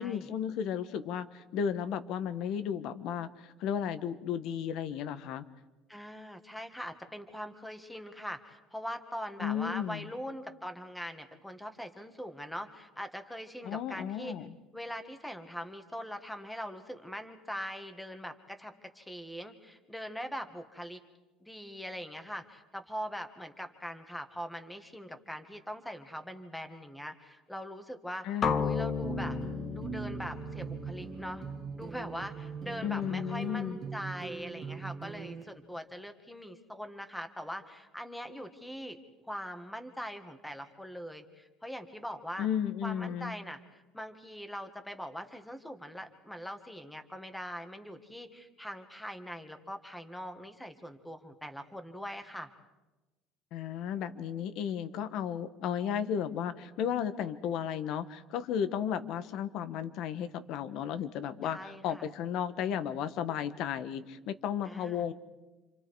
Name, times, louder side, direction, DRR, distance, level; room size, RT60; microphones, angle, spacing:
voice 1, 0.0-5.4 9.4-10.1 13.6-14.5 28.2-28.6 32.8-33.8 42.4-43.3 53.5-65.1, left 8 dB, 55° left, 12 dB, 1.3 m, -34 dB
voice 2, 5.9-14.3 14.7-21.0 21.4-28.3 28.6-29.4 29.7-31.4 31.7-39.0 39.3-42.5 42.8-52.5 61.4-62.1 64.6-65.0, equal, 5° left, 7 dB, 1.7 m, -42 dB
sound 1, 28.4-32.4, left 6 dB, 30° left, 0.8 m, -34 dB
sound 2, 29.0-35.4, right 6 dB, 25° right, 1.9 m, -41 dB
29.0 x 27.0 x 4.8 m, 1.1 s
cardioid pair, 155°, 0 cm